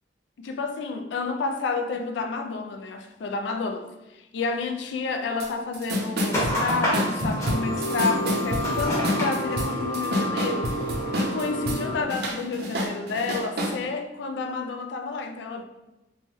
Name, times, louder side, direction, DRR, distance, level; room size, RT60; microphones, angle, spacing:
voice 1, 0.4-10.7 11.2-15.6, left 4 dB, 75° left, 0.3 m, -30 dB
sound 1, 5.4-5.5 5.7-11.8 12.1-13.8, equal, 60° right, 0.5 m, -28 dB
sound 2, 6.3-12.0, equal, 15° left, 0.9 m, -28 dB
2.9 x 2.3 x 3.0 m
head